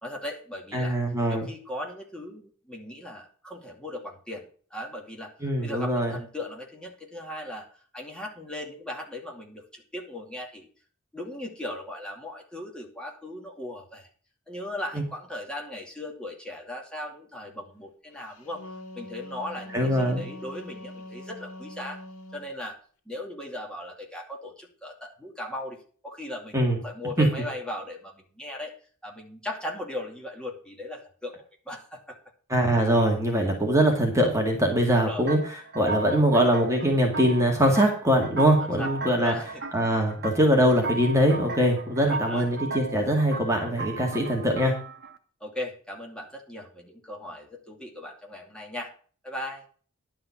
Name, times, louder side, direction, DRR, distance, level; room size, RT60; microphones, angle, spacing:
voice 1, 0.0-1.0 1.3-10.7 11.1-14.1 14.5-18.7 18.9-22.0 22.3-22.8 23.1-25.8 26.0-28.7 29.0-32.2 34.9-35.2 38.6-39.6 42.1-42.5 45.4-48.9 49.2-49.7, left 1 dB, 5° left, 0 dB, 2.5 m, -38 dB
voice 2, 0.7-1.5 5.4-6.2 19.7-20.2 26.5-26.8 27.2-27.3 32.5-35.4 35.7-39.3 39.7-44.7, right 1 dB, 15° right, 1 dB, 2.2 m, -22 dB
Wind instrument woodwind instrument, 18.3-22.5, left 1 dB, 70° left, 2.2 m, -43 dB
sound 1, 35.3-45.2, right 3 dB, 50° right, 1.2 m, -36 dB
11.5 x 5.6 x 7.2 m, 0.42 s
head